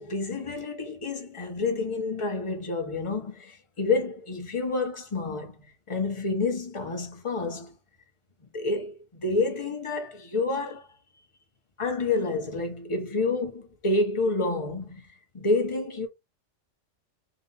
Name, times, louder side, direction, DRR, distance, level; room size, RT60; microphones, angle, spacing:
voice 1, 0.0-5.6 5.9-7.7 8.5-10.9 11.8-15.0 15.3-16.1, left 3 dB, 25° left, 1.0 m, -28 dB
3.9 x 2.4 x 4.0 m
omnidirectional pair, 1.3 m